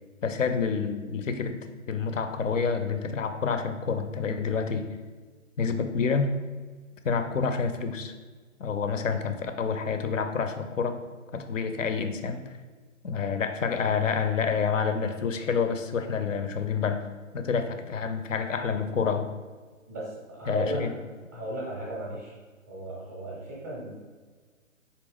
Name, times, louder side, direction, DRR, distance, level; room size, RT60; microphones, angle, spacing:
voice 1, 0.2-1.6 1.9-4.9 5.6-6.3 7.0-8.1 8.6-11.0 11.3-12.4 13.0-17.0 17.3-19.3 20.5-20.9, left 5 dB, 65° left, 8 dB, 0.5 m, -28 dB
voice 2, 19.9-20.8 21.3-22.3 22.7-24.1, right 1 dB, 15° right, -6 dB, 0.6 m, -35 dB
4.0 x 2.8 x 3.4 m, 1.4 s
figure-of-eight pair, 135°, 41 cm